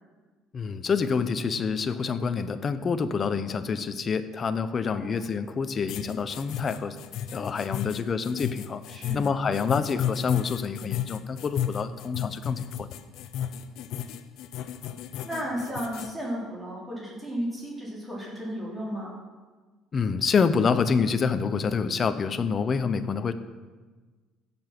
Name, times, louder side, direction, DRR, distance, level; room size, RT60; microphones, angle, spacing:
voice 1, 0.5-7.0 7.3-8.8 9.1-12.9 19.9-23.3, left 5 dB, 30° left, 10 dB, 0.8 m, -27 dB
sound 1, 5.9-16.1, left 10 dB, 65° left, 0.7 m, -33 dB
voice 2, 8.9-9.3 15.2-19.2, equal, 5° right, -6 dB, 3.6 m, -34 dB
16.0 x 7.1 x 6.0 m, 1.3 s
cardioid pair, 150°, 0 cm